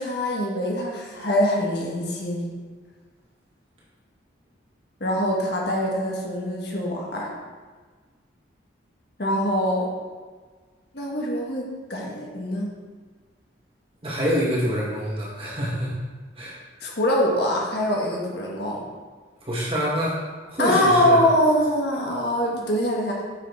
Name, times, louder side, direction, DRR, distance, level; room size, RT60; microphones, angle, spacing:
voice 1, 0.0-2.5 5.0-7.3 9.2-9.9 10.9-12.7 16.8-18.8 20.6-23.2, left 1 dB, 55° left, -2 dB, 1.7 m, -23 dB
voice 2, 14.0-15.9 16.4-16.6 19.4-20.2 20.5-21.2, equal, 30° right, -5 dB, 1.9 m, -26 dB
7.7 x 6.2 x 4.7 m, 1.5 s
head